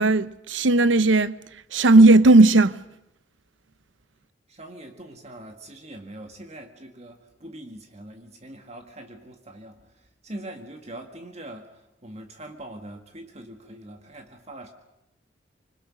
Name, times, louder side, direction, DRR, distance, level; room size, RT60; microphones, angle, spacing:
voice 1, 0.0-1.4 1.7-2.8, right 2 dB, 85° right, 0.8 m, -16 dB
voice 2, 4.5-14.7, right 1 dB, 35° right, 1.8 m, -42 dB
26.5 x 25.0 x 6.3 m
head